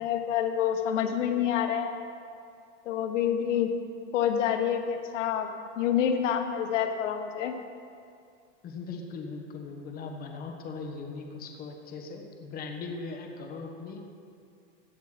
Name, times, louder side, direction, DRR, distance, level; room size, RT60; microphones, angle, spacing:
voice 1, 0.0-2.0 2.8-3.7 4.1-5.5 5.8-7.5, left 9 dB, 85° left, 6 dB, 1.2 m, -27 dB
voice 2, 8.6-14.0, left 4 dB, 25° left, 3 dB, 1.2 m, -39 dB
16.0 x 7.9 x 5.0 m, 2.4 s
supercardioid pair, 155°, 36 cm